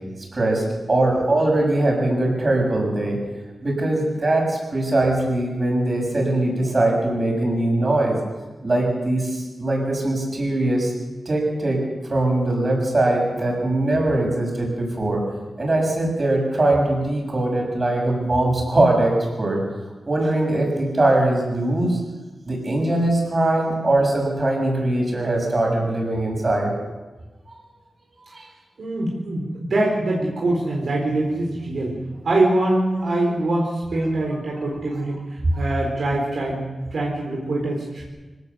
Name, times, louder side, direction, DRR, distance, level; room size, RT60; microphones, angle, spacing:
voice 1, 0.3-3.2 3.6-8.2 8.6-10.9 11.2-15.2 15.6-19.6 20.1-22.0 22.5-26.7 28.3-28.5, right 1 dB, 30° right, 0 dB, 6.8 m, -21 dB
voice 2, 28.8-31.9 32.2-35.2 35.6-38.0, right 2 dB, 60° right, -1 dB, 4.2 m, -23 dB
25.0 x 17.5 x 6.9 m, 1.2 s
wide cardioid pair, 165°, 0 cm